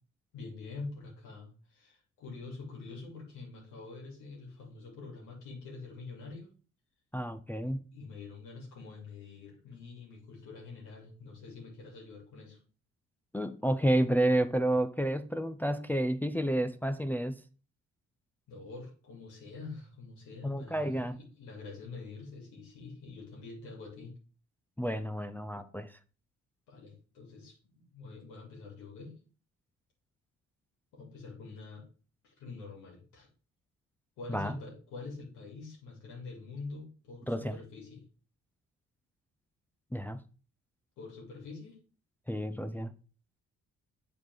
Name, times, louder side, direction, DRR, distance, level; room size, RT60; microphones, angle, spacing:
voice 1, 0.3-6.5 7.9-12.6 18.5-24.1 26.7-29.1 30.9-31.8 32.2-33.3 34.2-38.0 41.0-41.8, left 3 dB, 85° left, 2.5 m, -46 dB
voice 2, 7.1-7.9 13.3-17.4 20.4-21.2 24.8-25.9 34.3-34.6 37.3-37.6 39.9-40.2 42.3-42.9, right 1 dB, 5° left, 0.4 m, -30 dB
7.4 x 4.4 x 4.6 m
cardioid pair, 90°, 30 cm